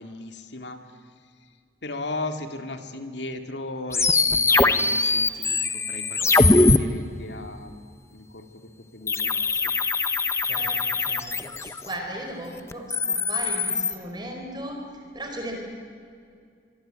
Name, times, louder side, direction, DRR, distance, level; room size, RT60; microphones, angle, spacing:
voice 1, 0.0-1.6 1.8-7.8 8.1-9.7, left 2 dB, 70° left, 6 dB, 2.4 m, -37 dB
sound 1, 3.9-6.8 9.1-11.9 12.7-13.9, left 3 dB, 15° left, 0.7 m, -22 dB
voice 2, 10.4-15.6, right 1 dB, 25° right, 2 dB, 4.6 m, -37 dB
25.5 x 24.0 x 9.1 m, 2.3 s
head